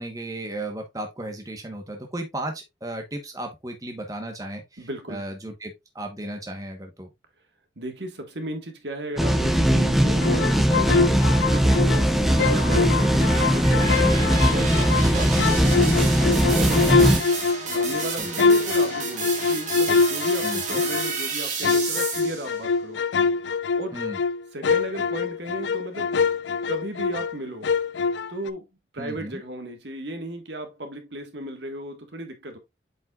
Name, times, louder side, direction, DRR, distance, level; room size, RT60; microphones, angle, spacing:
voice 1, 0.0-7.1 12.6-13.0 17.0-17.2 18.2-18.5 20.4-20.8 23.9-24.2 29.0-29.4, right 1 dB, 20° right, 1.1 m, -35 dB
voice 2, 4.8-5.2 7.8-11.9 12.3-16.1 16.4-17.0 17.7-23.0 23.8-24.0 24.5-26.2 26.7-27.7 28.3-28.7 28.9-32.6, right 1 dB, 70° right, 1.6 m, -35 dB
sound 1, 9.2-17.2, equal, ahead, 0.6 m, -20 dB
sound 2, 10.2-12.1 12.4-15.1 15.4-21.2 21.6-27.4 27.6-28.5, left 4 dB, 75° left, 0.4 m, -24 dB
sound 3, 11.5-22.6, right 4 dB, 40° right, 1.9 m, -32 dB
7.8 x 5.4 x 2.4 m
head